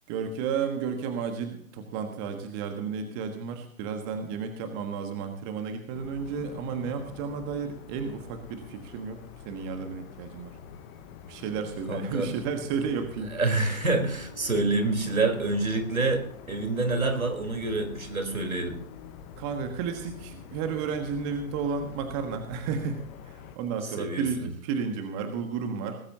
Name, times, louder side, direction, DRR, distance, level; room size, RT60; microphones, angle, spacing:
voice 1, 0.1-10.6 11.3-13.3 19.4-26.0, right 6 dB, 20° right, 6 dB, 1.4 m, -32 dB
sound 1, 5.9-23.6, left 7 dB, 15° left, 0.9 m, -46 dB
voice 2, 11.9-12.3 13.3-18.8 24.0-24.5, right 3 dB, 75° right, 6 dB, 4.1 m, -27 dB
18.5 x 15.5 x 2.8 m, 0.62 s
figure-of-eight pair, 135°, 41 cm